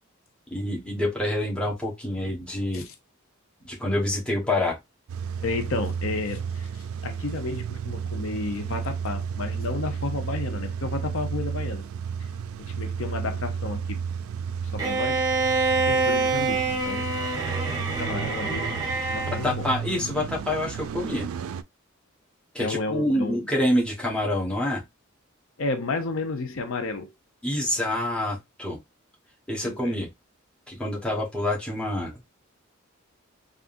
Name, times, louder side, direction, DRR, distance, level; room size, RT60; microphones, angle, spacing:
voice 1, 0.5-2.9 3.6-4.8 19.4-21.3 22.5-24.8 27.4-28.8 29.5-30.1 30.7-32.1, left 1 dB, 5° left, 1.0 m, -27 dB
Car / Engine starting / Idling, 5.1-21.6, right 7 dB, 85° right, 0.3 m, -33 dB
voice 2, 5.4-11.8 12.2-12.3 12.6-14.0 14.6-15.2 15.9-17.1 17.8-18.8 19.1-19.7 22.6-23.4 25.6-27.1 29.6-30.0, left 3 dB, 70° left, 0.6 m, -32 dB
Bowed string instrument, 14.8-19.5, right 3 dB, 20° right, 0.9 m, -26 dB
3.5 x 2.5 x 2.5 m
head